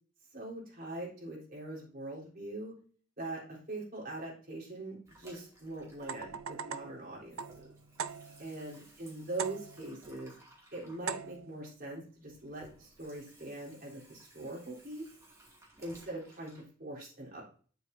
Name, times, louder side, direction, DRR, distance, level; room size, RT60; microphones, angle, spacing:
voice 1, 0.3-2.8 3.2-7.7 8.4-10.4 10.7-15.1 15.8-17.5, right 2 dB, 45° right, -3 dB, 3.6 m, -42 dB
Water tap faucet / Sink (filling or washing), 5.1-6.9 7.1-16.6, right 1 dB, 15° right, 2.3 m, -59 dB
sound 1, 6.0-8.6 9.4-10.0 11.1-11.6, right 7 dB, 85° right, 0.5 m, -41 dB
8.4 x 7.5 x 2.7 m, 0.42 s
head